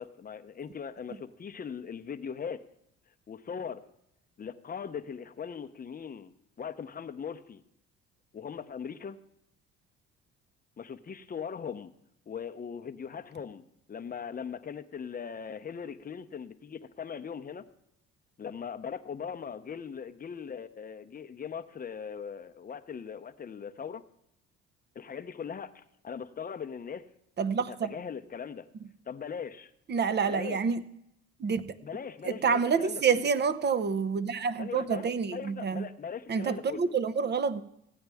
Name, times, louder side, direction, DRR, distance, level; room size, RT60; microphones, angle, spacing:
voice 1, 0.0-2.6 3.3-3.9 4.4-6.3 6.6-7.6 8.3-9.2 10.8-11.9 12.3-17.7 18.4-24.0 24.9-27.1 27.6-28.7 29.1-29.7 30.2-30.6 31.8-33.3 34.6-35.0 35.3-36.8, left 7 dB, 30° left, 9 dB, 0.7 m, -40 dB
voice 2, 27.4-27.9 29.9-30.8 31.4-31.7 32.2-35.9 36.3-37.6, right 6 dB, 35° right, 14 dB, 0.7 m, -28 dB
15.5 x 8.7 x 3.5 m, 0.79 s
supercardioid pair, 70°, 30 cm